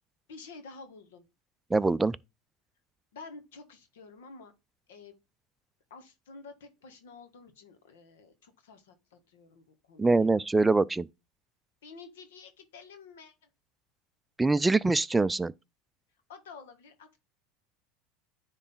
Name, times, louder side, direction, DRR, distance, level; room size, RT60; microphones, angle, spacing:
voice 1, 0.3-1.3 3.1-4.5 4.9-5.1 5.9-10.3 11.8-13.5 16.3-17.2, left 4 dB, 90° left, 1.8 m, -50 dB
voice 2, 1.7-2.2 10.0-11.1 14.4-15.5, right 3 dB, 10° right, 0.4 m, -24 dB
9.9 x 4.0 x 3.8 m
supercardioid pair, 110°, 0 cm